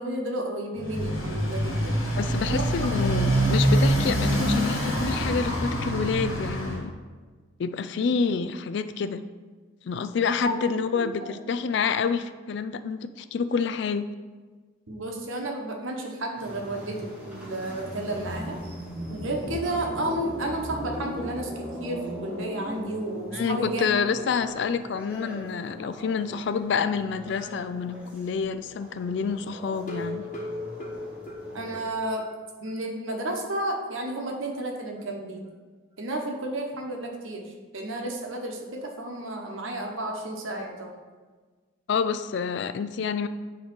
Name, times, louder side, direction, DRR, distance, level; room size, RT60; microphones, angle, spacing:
voice 1, 0.0-2.0 2.5-2.6 8.0-8.1 10.4-10.6 10.9-11.4 14.9-18.6 19.1-21.5 21.8-23.9 25.8-25.9 31.5-32.2 32.6-35.4 36.0-40.9, right 1 dB, 80° right, 2 dB, 1.1 m, -32 dB
Motorcycle, 0.8-6.8, right 1 dB, 90° left, 1.7 m, -25 dB
voice 2, 2.2-6.9 7.6-9.2 9.8-14.1 23.3-30.2 41.9-43.3, left 5 dB, 60° left, 12 dB, 0.3 m, -28 dB
sound 1, 16.4-31.9, equal, 5° right, 1.3 m, -39 dB
sound 2, 29.8-32.3 32.7-32.8 33.1-33.2 33.6-33.7, left 2 dB, 40° left, 1.3 m, -37 dB
8.7 x 3.1 x 5.2 m, 1.4 s
head